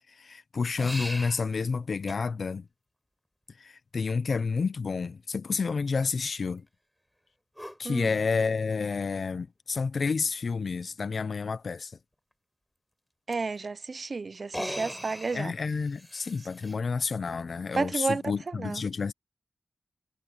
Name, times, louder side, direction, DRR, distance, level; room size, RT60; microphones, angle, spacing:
voice 1, 0.2-2.7 3.6-6.6 7.8-11.9 15.3-19.1, left 5 dB, 65° left, 0.7 m, -30 dB
sound 1, 0.8-1.4 2.1-2.2 4.3-4.4 7.6-7.8 9.2-9.3 9.8-9.9 10.2-10.3 13.3-13.4 14.4-16.8, equal, ahead, 4.1 m, -39 dB
voice 2, 7.8-8.2 13.3-15.5 17.7-18.8, right 4 dB, 50° right, 0.5 m, -32 dB
wide cardioid pair, 75°, 0 cm